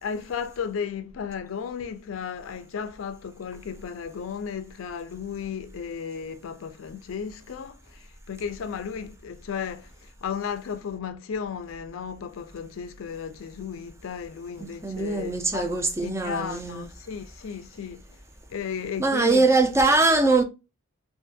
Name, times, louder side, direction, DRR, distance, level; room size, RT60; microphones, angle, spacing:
voice 1, 0.0-18.0 18.5-19.5, left 7 dB, 85° left, 0.4 m, -34 dB
voice 2, 14.6-16.9 19.0-20.4, right 3 dB, 15° right, 0.4 m, -22 dB
2.6 x 2.4 x 2.3 m
head